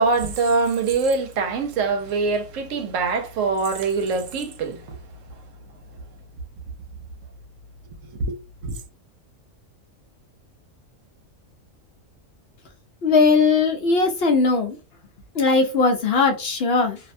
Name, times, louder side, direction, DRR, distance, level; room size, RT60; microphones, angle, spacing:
voice 1, 0.0-5.0 8.1-8.8, right 4 dB, 70° right, 1.0 m, -24 dB
voice 2, 13.0-14.8 15.3-17.0, left 4 dB, 55° left, 0.8 m, -19 dB
2.6 x 2.1 x 2.5 m
omnidirectional pair, 1.4 m